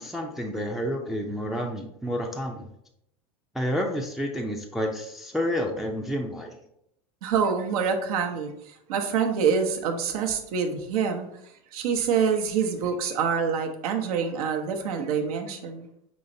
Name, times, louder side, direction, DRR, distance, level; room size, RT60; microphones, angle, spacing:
voice 1, 0.0-2.6 3.5-6.6, equal, ahead, 1 dB, 0.4 m, -29 dB
voice 2, 7.2-8.5 8.9-11.3 11.7-15.9, right 6 dB, 80° right, 4 dB, 0.8 m, -26 dB
5.5 x 3.1 x 2.6 m, 0.77 s
supercardioid pair, 120°, 19 cm